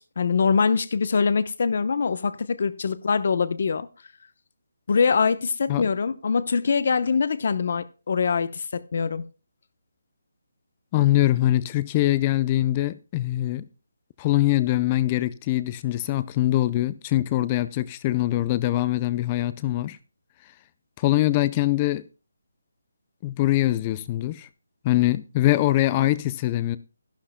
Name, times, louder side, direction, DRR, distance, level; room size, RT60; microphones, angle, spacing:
voice 1, 0.0-3.9 4.9-9.2, left 5 dB, 50° left, 0.9 m, -23 dB
voice 2, 10.9-13.6 14.2-20.0 21.0-22.0 23.2-24.5 24.8-26.8, left 15 dB, 20° left, 0.5 m, -23 dB
13.5 x 11.5 x 2.2 m
hypercardioid pair, 170°, 0 cm